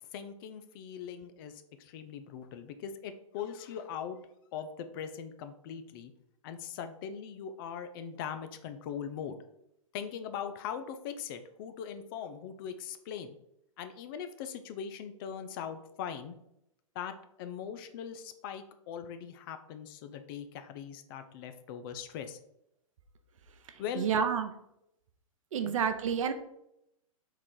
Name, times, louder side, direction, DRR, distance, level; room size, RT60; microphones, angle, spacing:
voice 1, 0.0-4.2 4.5-6.1 6.4-9.4 9.9-13.4 13.8-16.3 17.0-22.4 23.8-24.1 25.6-25.8, left 8 dB, 40° left, 9 dB, 0.4 m, -41 dB
voice 2, 24.0-24.5 25.5-26.3, right 7 dB, 65° right, 9 dB, 0.6 m, -29 dB
3.8 x 2.4 x 4.5 m, 0.80 s
hypercardioid pair, 120°, 18 cm